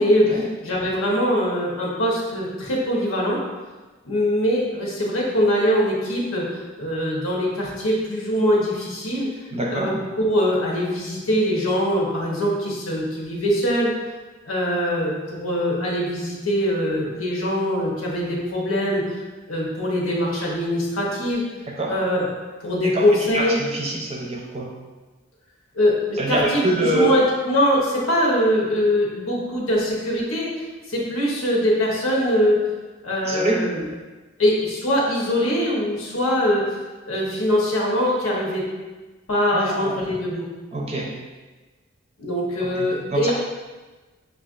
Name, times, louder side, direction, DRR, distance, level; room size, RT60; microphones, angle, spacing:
voice 1, 0.0-3.4 4.0-9.3 9.7-13.9 14.5-19.2 19.5-21.4 21.9-22.3 22.6-23.6 25.7-26.6 26.9-30.5 30.9-32.6 33.0-33.8 34.4-36.7 37.1-38.7 39.3-40.4 42.2-43.3, equal, 90° left, -3 dB, 1.0 m, -22 dB
voice 2, 9.5-9.9 21.8-21.9 22.8-23.1 23.3-24.7 26.1-27.2 33.2-33.6 39.5-40.0 40.7-41.1 42.6-43.3, right 2 dB, 30° right, -1 dB, 0.6 m, -25 dB
6.1 x 2.5 x 2.5 m, 1.3 s
head